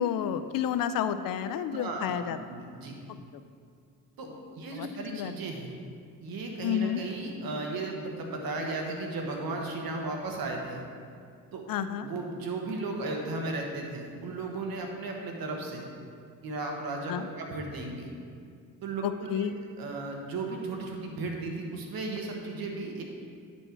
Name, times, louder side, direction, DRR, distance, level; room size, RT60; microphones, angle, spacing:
voice 1, 0.0-2.4 4.7-5.3 6.6-7.0 11.7-12.1 17.1-17.3 19.0-19.5, left 9 dB, 70° left, 11 dB, 0.5 m, -30 dB
voice 2, 1.7-2.1 2.5-2.9 4.2-4.3 4.5-5.7 6.2-10.8 11.5-11.6 12.0-15.8 16.4-18.1 18.8-19.5 19.8-23.0, right 3 dB, 75° right, 1 dB, 1.3 m, -35 dB
10.0 x 4.3 x 4.6 m, 2.2 s
cardioid pair, 75°, 36 cm